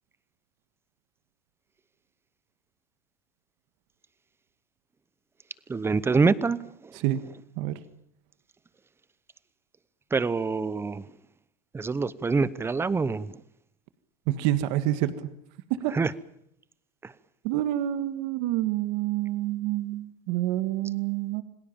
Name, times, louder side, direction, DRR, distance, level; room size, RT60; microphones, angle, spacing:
voice 1, 5.7-6.6 6.8-6.9 10.1-11.0 11.7-13.4 15.9-16.1 17.0-17.1, right 4 dB, 10° right, 0.8 m, -25 dB
voice 2, 14.3-15.3 15.8-15.9 17.4-21.4, right 14 dB, 55° right, 1.6 m, -27 dB
27.5 x 19.0 x 7.3 m
supercardioid pair, 135°, 21 cm